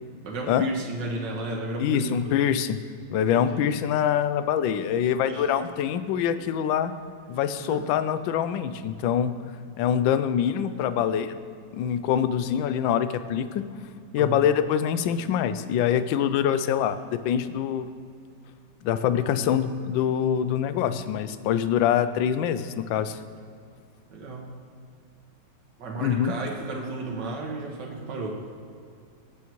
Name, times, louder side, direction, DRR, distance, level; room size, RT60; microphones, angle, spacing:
voice 1, 0.2-2.3 3.3-3.6 5.3-5.6 7.6-7.9 14.2-14.5 19.1-19.6 20.8-20.9 24.1-24.5 25.8-28.4, right 2 dB, 65° right, -1 dB, 2.0 m, -33 dB
voice 2, 1.8-2.8 3.1-6.9 7.3-9.3 9.8-11.3 11.7-13.6 14.1-17.9 18.8-23.2 26.0-26.3, left 9 dB, 80° left, 12 dB, 1.3 m, -24 dB
19.0 x 7.0 x 3.1 m, 2.4 s
omnidirectional pair, 2.1 m